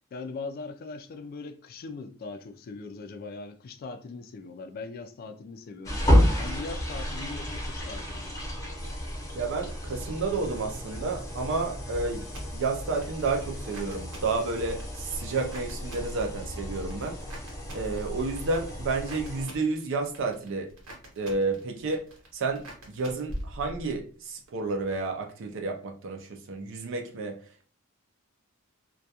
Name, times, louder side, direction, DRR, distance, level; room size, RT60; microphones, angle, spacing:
voice 1, 0.1-6.0 6.3-8.3, left 3 dB, 45° left, 0.3 m, -40 dB
sound 1, 5.9-19.5, equal, 15° left, 0.7 m, -31 dB
voice 2, 9.3-12.2 12.5-17.2 17.7-20.7 21.2-22.0 22.3-27.4, right 3 dB, 60° right, 0.4 m, -31 dB
Bowed string instrument, 9.7-13.2, equal, 15° right, 0.7 m, -50 dB
sound 2, 12.2-24.1 24.4-25.0, equal, 85° right, 1.0 m, -46 dB
2.3 x 2.2 x 2.7 m
head